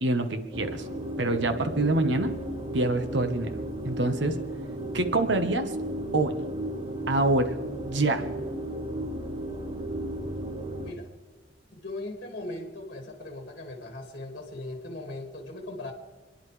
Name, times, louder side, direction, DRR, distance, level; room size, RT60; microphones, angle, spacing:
voice 1, 0.0-0.9 1.2-2.3 2.7-3.6 3.8-4.4 4.9-5.7 6.1-6.3 7.1-7.5 7.9-8.3, right 2 dB, 75° right, 8 dB, 1.2 m, -25 dB
sound 1, 0.5-10.9, right 1 dB, 30° right, 1.2 m, -34 dB
voice 2, 10.8-11.1 11.7-15.9, left 2 dB, 50° left, 2 dB, 2.1 m, -39 dB
28.5 x 11.0 x 3.3 m, 1.4 s
head